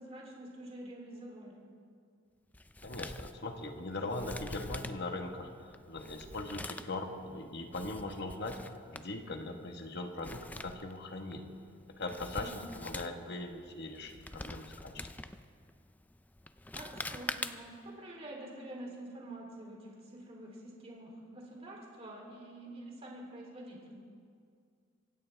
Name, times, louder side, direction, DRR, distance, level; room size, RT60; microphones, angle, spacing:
voice 1, 0.0-1.6 12.4-12.6 16.7-24.0, right 1 dB, 30° right, -2 dB, 3.4 m, -47 dB
Male speech man speaking, 2.5-17.9, left 2 dB, 10° left, 0.4 m, -46 dB
voice 2, 2.8-5.5 5.9-8.6 8.9-11.5 11.9-15.1, left 2 dB, 55° left, 4 dB, 1.5 m, -40 dB
25.0 x 16.5 x 3.5 m, 2.2 s
head